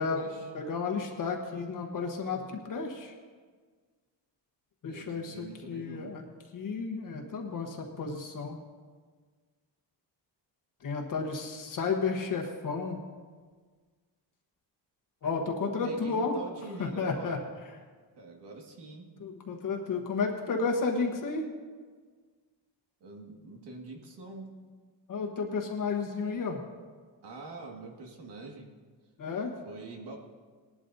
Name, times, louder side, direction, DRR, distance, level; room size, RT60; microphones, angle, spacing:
voice 1, 0.0-0.5 4.8-6.2 11.9-12.0 15.2-15.3 15.6-17.4 18.2-19.1 23.0-24.5 27.2-28.7 29.6-30.2, right 3 dB, 65° right, 1 dB, 2.0 m, -44 dB
voice 2, 0.5-3.1 4.8-6.2 6.5-8.6 10.8-13.0 15.2-16.3 16.8-17.4 19.2-21.5 25.1-26.6 29.2-29.5, left 4 dB, 45° left, 1 dB, 1.2 m, -32 dB
19.0 x 11.5 x 2.7 m, 1.5 s
cardioid pair, 145°, 44 cm